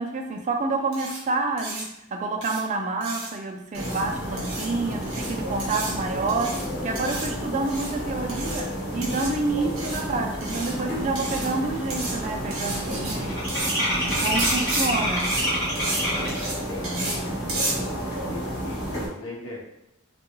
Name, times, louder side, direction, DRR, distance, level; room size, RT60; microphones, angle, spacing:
voice 1, 0.0-13.4 14.0-15.4 16.7-17.4, right 3 dB, 35° right, 3 dB, 0.3 m, -29 dB
sound 1, 0.9-1.2 1.6-1.8 2.4-2.6 3.0-3.3 3.7-4.0 4.4-4.7 5.0-5.3 5.6-5.9 6.3-6.7 7.0-7.3 7.7-7.9 8.3-8.6 9.0-9.3 9.8-10.0 10.4-10.7 11.2-11.5 11.9-12.1 12.5-13.1 13.5-13.7 14.1-14.9 15.2-15.4 15.8-16.0 16.3-16.6 16.8-17.2 17.5-17.7, right 2 dB, 70° right, 0.9 m, -31 dB
sound 2, 3.7-19.1, equal, 50° left, 1.2 m, -31 dB
sound 3, 11.6-11.7 11.9-16.5, equal, 15° left, 0.9 m, -28 dB
voice 2, 16.6-17.9 18.3-19.6, left 1 dB, 85° left, -4 dB, 0.9 m, -39 dB
2.4 x 2.3 x 2.9 m, 0.86 s
head